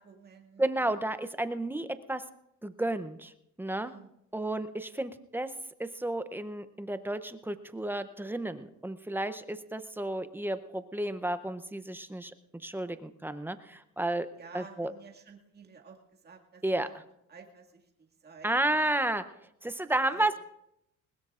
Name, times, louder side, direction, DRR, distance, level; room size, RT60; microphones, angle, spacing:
voice 1, 0.0-1.0 3.8-4.1 14.4-16.9 17.3-18.6 20.1-20.3, right 5 dB, 30° right, 1 dB, 2.0 m, -52 dB
voice 2, 0.6-2.2 2.6-3.3 3.6-3.9 4.3-5.5 5.8-14.3 14.5-14.9 16.6-16.9 18.4-19.3 19.6-20.4, right 1 dB, 5° right, 11 dB, 0.6 m, -32 dB
21.0 x 20.0 x 2.5 m, 0.78 s
cardioid pair, 140°, 32 cm